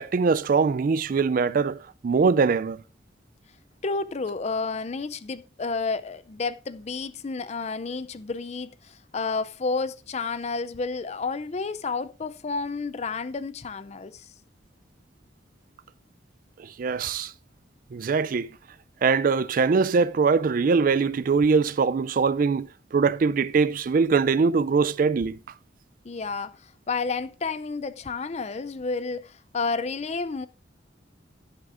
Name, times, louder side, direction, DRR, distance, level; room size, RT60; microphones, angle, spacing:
voice 1, 0.0-2.8 16.6-17.3 17.9-18.5 19.0-25.4, right 5 dB, 50° right, 0.4 m, -22 dB
voice 2, 3.8-14.3 26.0-30.5, left 4 dB, 35° left, 0.5 m, -31 dB
11.0 x 11.0 x 2.5 m
head